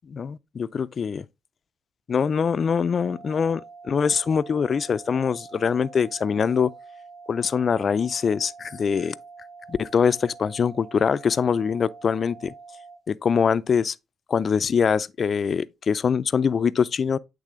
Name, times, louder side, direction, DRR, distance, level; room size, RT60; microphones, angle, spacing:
voice 1, 0.1-1.2 2.1-6.7 7.3-9.2 9.7-12.5 13.1-14.0 14.3-17.2, left 6 dB, 45° left, 0.3 m, -23 dB
sound 1, 3.0-13.0, right 4 dB, 65° right, 2.7 m, -45 dB
8.2 x 3.3 x 3.6 m
cardioid pair, 90°, 0 cm